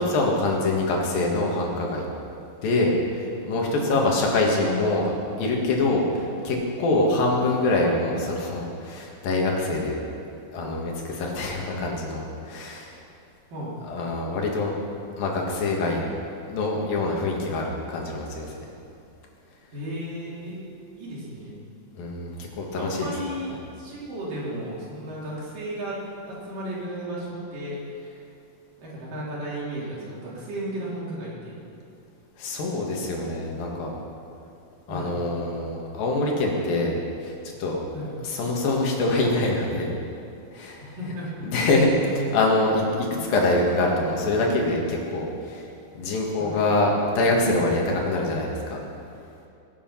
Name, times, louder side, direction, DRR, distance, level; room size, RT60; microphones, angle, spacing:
voice 1, 0.0-2.1 2.6-5.1 5.4-10.0 10.5-13.0 13.9-14.8 15.2-16.1 16.5-18.6 22.0-23.1 32.4-33.9 34.9-37.8 38.2-39.9 40.5-41.0 41.4-45.7 46.0-48.8, left 2 dB, 70° left, -1 dB, 3.7 m, -25 dB
voice 2, 6.9-7.3 13.5-13.7 19.7-20.6 21.0-21.6 22.8-23.5 23.8-26.0 26.3-27.8 28.8-31.6 34.9-35.1 37.9-38.1 40.8-41.5 43.1-43.3 46.4-46.6, right 1 dB, 65° right, -7 dB, 5.1 m, -34 dB
22.0 x 8.6 x 5.9 m, 2.6 s
omnidirectional pair, 4.3 m